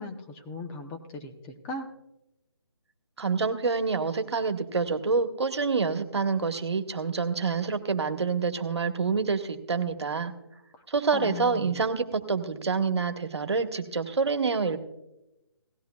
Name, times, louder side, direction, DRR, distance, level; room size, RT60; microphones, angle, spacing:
voice 1, 0.0-1.9 11.1-11.8, left 3 dB, 15° left, 4 dB, 0.7 m, -38 dB
voice 2, 3.2-10.3 10.9-14.8, right 4 dB, 75° right, 7 dB, 1.3 m, -27 dB
17.5 x 14.5 x 2.3 m, 0.92 s
figure-of-eight pair, 150°, 14 cm